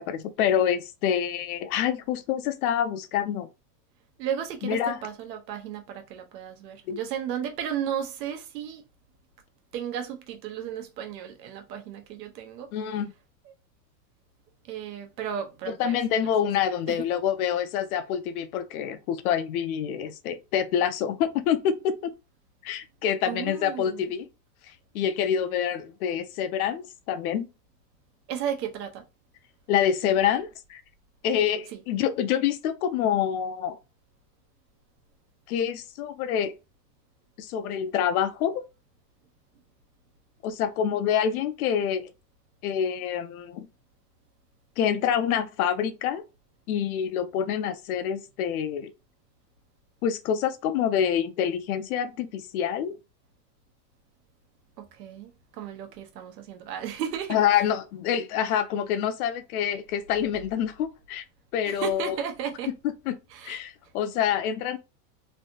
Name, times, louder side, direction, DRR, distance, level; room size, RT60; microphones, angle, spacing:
voice 1, 0.0-3.5 4.6-5.0 6.9-7.0 12.7-13.1 15.7-22.1 22.6-24.2 24.9-27.5 29.7-30.8 31.2-33.8 35.5-36.5 37.4-38.6 40.4-42.1 42.6-43.7 44.8-46.2 46.7-48.9 50.0-53.0 57.3-61.2 61.5-62.2 63.1-63.2 63.4-64.8, left 9 dB, 60° left, 0.6 m, -26 dB
voice 2, 4.2-8.8 9.7-12.7 14.7-16.0 16.9-17.0 23.3-24.0 28.3-29.0 54.8-57.4 61.6-62.7 63.3-63.6, right 9 dB, 90° right, 1.0 m, -34 dB
3.2 x 2.7 x 2.7 m
supercardioid pair, 170°, 49 cm